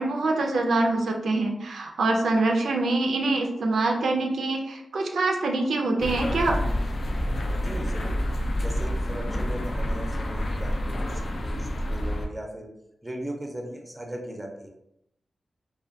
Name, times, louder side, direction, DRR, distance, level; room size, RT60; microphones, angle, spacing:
voice 1, 0.0-6.6, right 2 dB, 85° right, 2 dB, 0.3 m, -25 dB
sound 1, 6.0-12.3, left 1 dB, 60° left, 0.3 m, -28 dB
voice 2, 7.5-8.2 8.6-12.7 13.0-14.7, right 1 dB, 15° right, 1 dB, 0.4 m, -38 dB
2.2 x 2.2 x 2.6 m, 0.80 s
wide cardioid pair, 90°, 0 cm